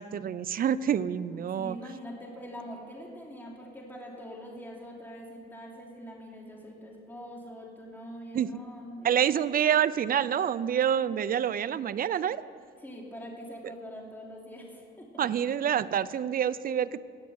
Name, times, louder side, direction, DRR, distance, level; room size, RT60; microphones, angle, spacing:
voice 1, 0.0-1.8 8.3-8.5 9.0-12.4 15.2-17.0, right 9 dB, 45° right, 17 dB, 0.5 m, -27 dB
voice 2, 1.3-9.3 12.8-15.3, equal, 10° left, -2 dB, 3.1 m, -44 dB
17.5 x 6.7 x 8.1 m, 2.4 s
cardioid pair, 90°, 20 cm